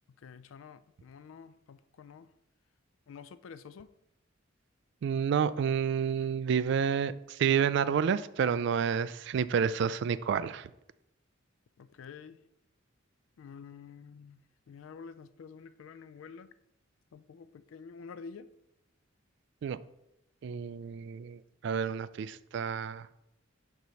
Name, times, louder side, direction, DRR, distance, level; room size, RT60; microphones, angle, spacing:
voice 1, 0.2-2.3 3.1-3.9 11.8-12.4 13.4-14.4 14.7-16.5 17.1-18.5, left 6 dB, 80° left, 0.3 m, -49 dB
voice 2, 5.0-10.7 19.6-19.8 20.4-23.1, right 7 dB, 60° right, 0.3 m, -29 dB
4.7 x 3.9 x 5.6 m
head